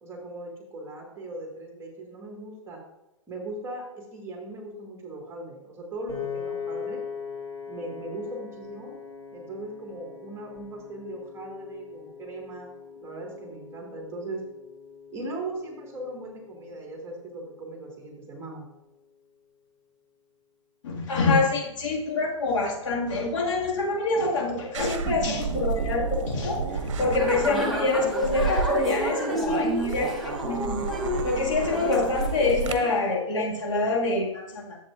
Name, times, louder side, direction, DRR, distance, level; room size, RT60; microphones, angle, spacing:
voice 1, 0.0-2.8 3.3-7.0 7.7-8.9 9.3-12.7 13.0-14.4 15.1-18.7 27.5-27.8, right 2 dB, 15° right, -1 dB, 2.2 m, -38 dB
Piano, 6.1-18.3, left 6 dB, 30° left, 3.4 m, -41 dB
voice 2, 20.8-30.9 31.2-34.8, left 3 dB, 70° left, -2 dB, 2.2 m, -26 dB
sound 1, 24.7-32.7, right 6 dB, 65° right, 0.9 m, -31 dB
sound 2, 27.2-32.9, equal, ahead, 1.2 m, -31 dB
10.5 x 7.8 x 2.6 m, 0.92 s
hypercardioid pair, 125°, 17 cm